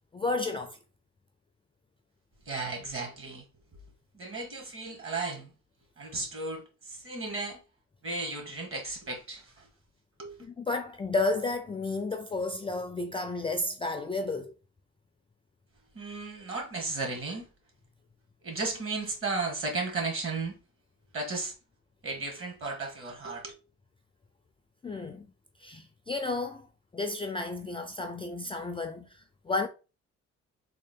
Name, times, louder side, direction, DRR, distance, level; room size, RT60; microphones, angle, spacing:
voice 1, 0.1-0.8 10.4-14.5 24.8-25.3 25.6-26.7 26.9-29.7, left 3 dB, 20° left, 0.3 m, -32 dB
voice 2, 2.5-3.5 4.1-5.5 6.0-7.6 8.0-9.7 10.2-10.4 15.9-17.5 18.4-20.6 21.1-21.5 22.0-23.5, right 3 dB, 45° right, 1.6 m, -34 dB
3.6 x 2.3 x 3.6 m
cardioid pair, 90°, 30 cm